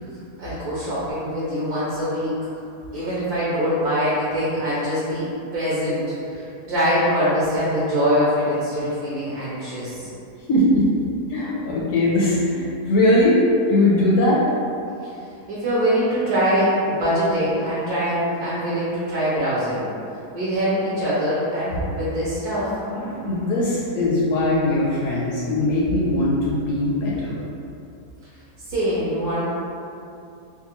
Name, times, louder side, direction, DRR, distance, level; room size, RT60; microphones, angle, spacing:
voice 1, 0.4-2.3 2.9-10.1 15.0-15.1 15.5-19.8 20.3-22.7 28.7-29.5, equal, 70° right, -9 dB, 1.2 m, -23 dB
voice 2, 10.5-10.9 11.3-13.4 13.7-14.4 22.9-27.4, left 1 dB, 70° left, -5 dB, 0.8 m, -20 dB
3.6 x 2.4 x 2.9 m, 2.6 s
omnidirectional pair, 1.7 m